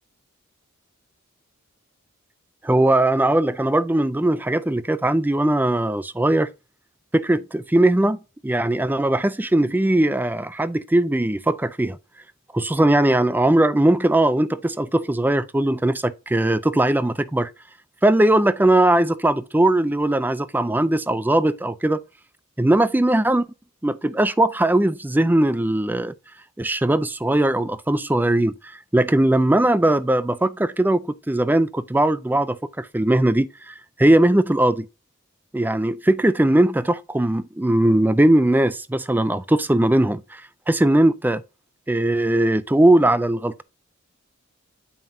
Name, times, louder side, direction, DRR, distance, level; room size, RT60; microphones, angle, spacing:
voice 1, 2.6-6.5 7.1-12.0 12.5-17.5 18.0-22.0 22.6-23.5 23.8-26.1 26.6-28.6 28.9-34.9 35.5-40.4 40.7-41.4 41.9-43.6, right 1 dB, 10° right, 0.4 m, -19 dB
9.2 x 5.4 x 2.7 m
head